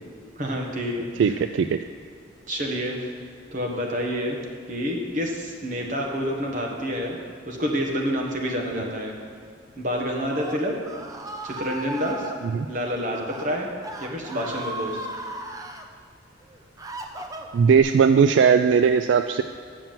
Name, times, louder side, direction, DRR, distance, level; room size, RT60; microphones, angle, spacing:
voice 1, 0.4-1.3 2.5-3.0 3.5-4.4 4.7-7.2 7.5-9.1 9.8-10.8 11.4-12.3 12.7-13.7 14.0-15.1, equal, 45° right, 0 dB, 1.4 m, -28 dB
voice 2, 1.2-1.8 12.5-12.7 17.5-19.4, right 6 dB, 75° right, 9 dB, 0.3 m, -18 dB
Screaming, 10.0-12.3 13.1-13.5 13.8-15.8 16.4-17.8, right 1 dB, 20° right, 0.6 m, -36 dB
7.4 x 7.0 x 7.4 m, 2.1 s
head